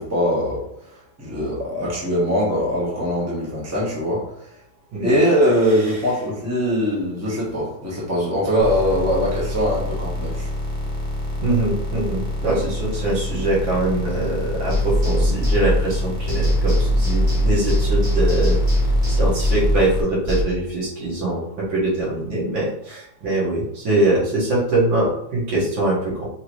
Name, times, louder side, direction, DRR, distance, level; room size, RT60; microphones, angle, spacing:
voice 1, 0.0-4.5 5.0-10.5, equal, 10° right, -6 dB, 1.0 m, -22 dB
sound 1, 8.6-20.0, left 1 dB, 5° left, 0.3 m, -27 dB
voice 2, 11.4-18.6 19.1-26.3, right 2 dB, 75° right, -7 dB, 2.4 m, -23 dB
sound 2, 14.7-16.0 16.3-20.4, equal, 30° right, 2.0 m, -20 dB
4.8 x 3.0 x 3.1 m, 0.74 s
omnidirectional pair, 2.1 m